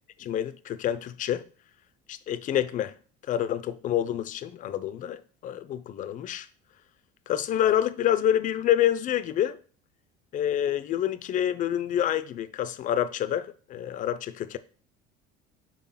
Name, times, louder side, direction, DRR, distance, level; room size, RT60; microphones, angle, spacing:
voice 1, 0.2-1.4 2.1-2.9 3.3-6.5 7.3-9.6 10.3-14.6, left 11 dB, 40° left, 0.5 m, -27 dB
4.4 x 3.9 x 5.6 m
cardioid pair, 140°, 21 cm